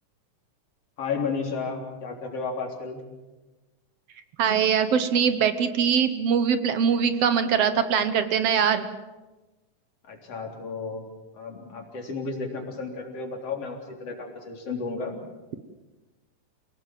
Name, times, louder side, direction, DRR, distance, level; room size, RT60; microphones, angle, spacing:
voice 1, 1.0-3.0 10.1-11.0 11.3-15.1, left 4 dB, 50° left, 1 dB, 4.5 m, -33 dB
voice 2, 4.4-8.9, right 7 dB, 60° right, 10 dB, 1.9 m, -22 dB
28.0 x 18.5 x 7.6 m, 1.1 s
omnidirectional pair, 3.6 m